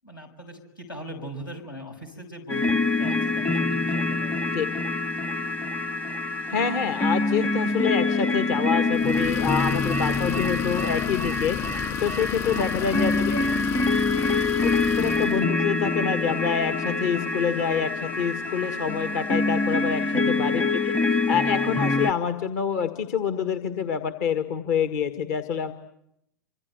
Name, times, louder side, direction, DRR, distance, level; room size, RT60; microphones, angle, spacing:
voice 1, 0.0-4.7 12.4-14.0 20.0-20.7, equal, 85° left, 3 dB, 6.4 m, -41 dB
sound 1, 2.5-22.1, left 3 dB, 15° left, 1.0 m, -25 dB
voice 2, 6.5-13.4 14.6-20.9 21.3-25.7, left 7 dB, 50° left, 9 dB, 1.7 m, -27 dB
Idling, 8.9-15.5, left 10 dB, 35° left, 2.4 m, -32 dB
27.5 x 25.5 x 8.0 m, 0.79 s
figure-of-eight pair, 95°, 11 cm